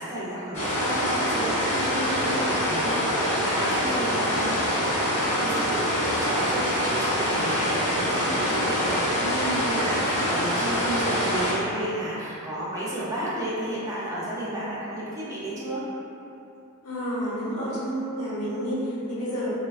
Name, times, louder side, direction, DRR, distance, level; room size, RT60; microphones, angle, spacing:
voice 1, 0.0-15.8, right 1 dB, 15° right, -9 dB, 0.3 m, -32 dB
sound 1, 0.5-11.5, equal, 30° left, 0.8 m, -25 dB
voice 2, 16.8-19.5, equal, 90° left, -8 dB, 0.8 m, -30 dB
3.0 x 2.3 x 2.3 m, 3.0 s
head